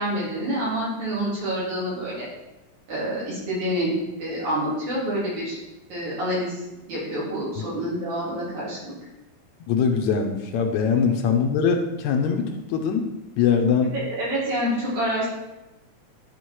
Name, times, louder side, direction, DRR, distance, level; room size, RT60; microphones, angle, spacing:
voice 1, 0.0-2.3 2.9-3.9 4.2-5.6 5.9-6.6 6.9-8.9 13.9-15.3, equal, 70° right, -8 dB, 4.9 m, -27 dB
voice 2, 9.7-13.1 13.4-13.9, left 6 dB, 75° left, 4 dB, 1.9 m, -22 dB
11.5 x 4.6 x 4.7 m, 0.99 s
omnidirectional pair, 3.5 m